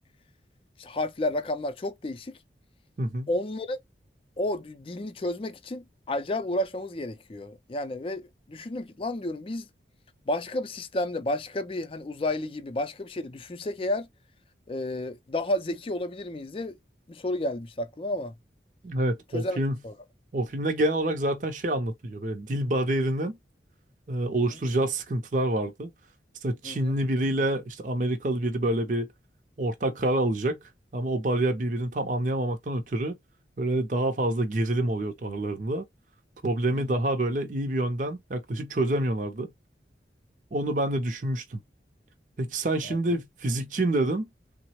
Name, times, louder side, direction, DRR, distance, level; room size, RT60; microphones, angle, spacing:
voice 1, 0.8-2.4 3.3-3.8 4.4-9.7 10.3-14.1 14.7-16.8 17.1-18.3 19.3-19.6 19.8-19.9 24.3-24.6 26.6-27.0 36.7-37.0 42.8-43.0, left 1 dB, 30° left, 0.4 m, -31 dB
voice 2, 3.0-3.3 18.8-19.8 20.3-23.4 24.1-25.9 26.4-29.1 29.6-30.6 30.9-33.2 33.6-35.8 36.4-39.5 40.5-41.6 42.4-44.3, right 1 dB, 45° right, 0.5 m, -27 dB
3.5 x 2.0 x 2.9 m
head